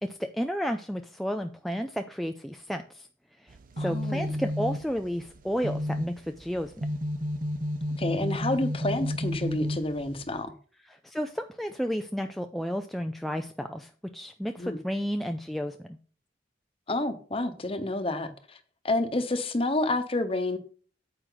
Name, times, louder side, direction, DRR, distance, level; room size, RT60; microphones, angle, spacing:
voice 1, 0.0-3.1 3.8-6.9 11.0-15.7, equal, ahead, 0.4 m, -32 dB
sound 1, 3.5-10.4, equal, 45° right, 0.7 m, -32 dB
voice 2, 3.8-4.3 8.0-10.5 14.6-14.8 16.9-18.6 18.8-20.6, left 2 dB, 30° left, 1.0 m, -29 dB
9.2 x 7.6 x 3.9 m
head